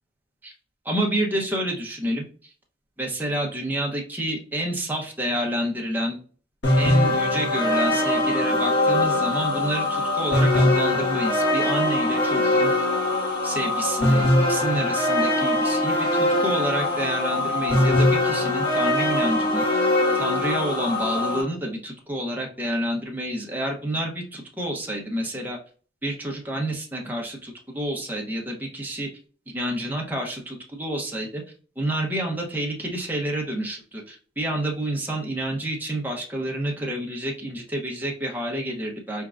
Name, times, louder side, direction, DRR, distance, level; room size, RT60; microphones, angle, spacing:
voice 1, 0.8-2.3 3.0-6.2 6.8-12.7 13.4-19.8 20.1-25.6 26.0-29.1 29.5-31.4 31.8-39.3, right 1 dB, 10° right, -1 dB, 1.0 m, -29 dB
sound 1, 6.6-21.4, left 1 dB, 75° left, 1.8 m, -22 dB
4.5 x 3.5 x 2.5 m, 0.41 s
head